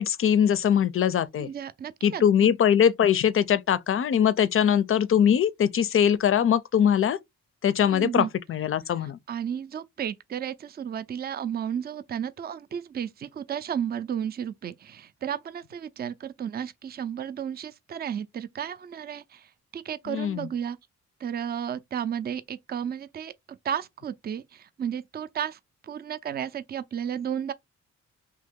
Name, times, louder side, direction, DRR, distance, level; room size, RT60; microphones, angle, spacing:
voice 1, 0.0-1.5 2.0-7.2 7.6-9.2 20.1-20.5, left 8 dB, 50° left, 0.4 m, -22 dB
voice 2, 1.4-2.5 7.8-8.3 9.0-20.8 21.2-27.5, right 8 dB, 35° right, 0.4 m, -33 dB
2.8 x 2.8 x 3.6 m
cardioid pair, 80°, 29 cm